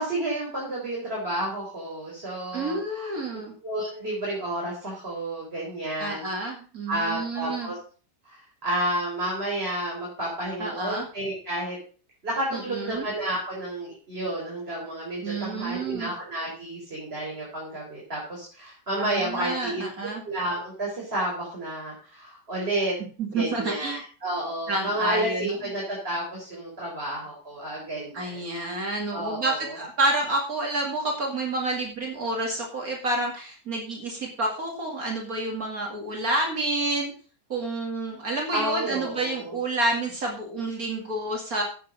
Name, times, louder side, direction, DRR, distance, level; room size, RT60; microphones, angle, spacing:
voice 1, 0.0-3.1 3.6-6.3 6.9-7.8 8.2-11.8 12.2-19.8 20.2-23.0 23.3-28.4 29.1-29.8 38.5-39.5, right 1 dB, 35° right, -4 dB, 4.8 m, -31 dB
voice 2, 2.5-3.5 6.0-7.7 10.6-11.1 12.5-13.0 15.2-16.1 19.0-20.2 23.2-24.0 24.7-25.6 28.1-37.1 37.5-41.6, right 2 dB, 55° right, 0 dB, 2.7 m, -29 dB
10.5 x 8.5 x 6.5 m, 0.41 s
omnidirectional pair, 1.8 m